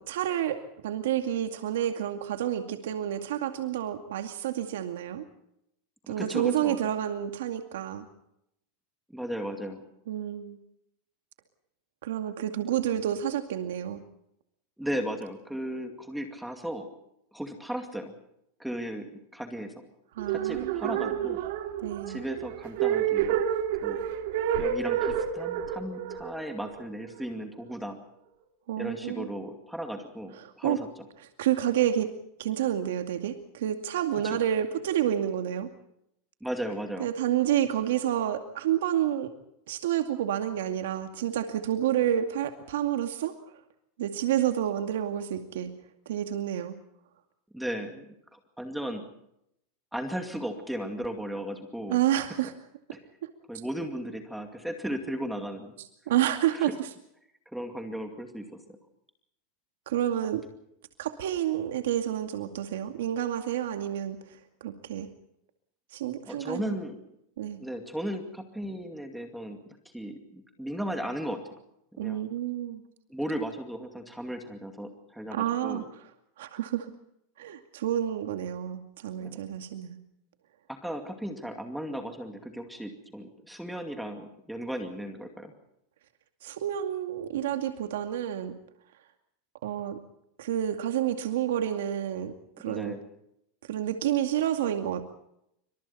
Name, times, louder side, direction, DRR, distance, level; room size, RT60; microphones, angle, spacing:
voice 1, 0.0-5.3 6.1-8.0 10.1-10.6 12.0-14.0 20.2-21.1 21.8-22.2 28.7-29.3 30.4-30.8 31.4-32.1 32.4-35.7 37.0-39.3 39.7-43.3 44.0-45.7 46.1-46.8 51.9-52.5 53.2-53.3 56.1-56.9 59.9-60.4 61.0-65.1 65.9-66.8 67.4-67.6 72.0-72.8 75.3-75.8 76.4-76.9 77.4-80.0 86.4-88.5 89.6-90.0 90.4-92.9 93.7-95.1, right 11 dB, 80° right, 6 dB, 2.3 m, -29 dB
voice 2, 6.1-6.9 9.1-9.8 14.8-16.9 17.3-18.1 18.6-19.7 20.3-21.4 22.1-23.4 23.8-24.0 24.6-28.0 28.8-30.9 34.2-34.4 36.4-37.1 47.5-49.0 49.9-52.0 53.5-55.7 56.5-56.7 57.5-58.6 66.3-67.0 67.6-71.4 72.0-72.3 73.1-75.9 79.2-79.4 80.7-85.5 92.7-93.0, equal, ahead, 5 dB, 2.3 m, -36 dB
sound 1, 20.2-27.4, right 9 dB, 60° right, 2.6 m, -29 dB
27.0 x 25.5 x 4.3 m, 0.78 s
supercardioid pair, 165°, 0 cm